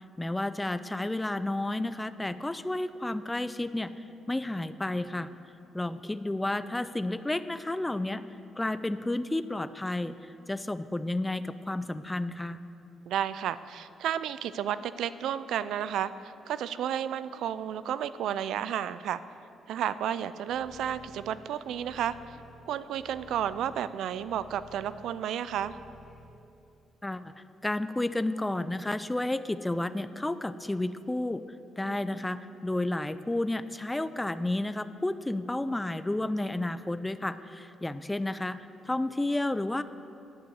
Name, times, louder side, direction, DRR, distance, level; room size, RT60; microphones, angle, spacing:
voice 1, 0.2-5.3 5.7-8.2 8.6-12.6 27.0-27.3 27.6-31.4 31.8-38.6 38.9-39.8, left 1 dB, 10° left, 13 dB, 0.4 m, -31 dB
voice 2, 13.1-19.2 19.7-22.4 22.7-25.8 31.8-32.0, right 10 dB, 80° right, 15 dB, 0.3 m, -32 dB
sound 1, 20.5-26.2, equal, 35° left, 2.0 m, -53 dB
10.5 x 5.5 x 8.1 m, 2.7 s
cardioid pair, 90°, 0 cm